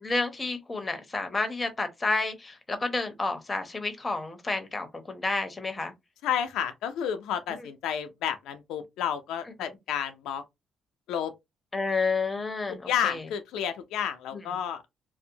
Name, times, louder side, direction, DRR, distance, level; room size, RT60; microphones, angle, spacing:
voice 1, 0.0-5.9 11.7-13.2 14.3-14.4, left 3 dB, 25° left, 0.7 m, -30 dB
voice 2, 6.2-10.4 11.1-11.3 12.7-14.8, left 9 dB, 90° left, 0.4 m, -31 dB
2.6 x 2.0 x 2.7 m
cardioid pair, 90°, 0 cm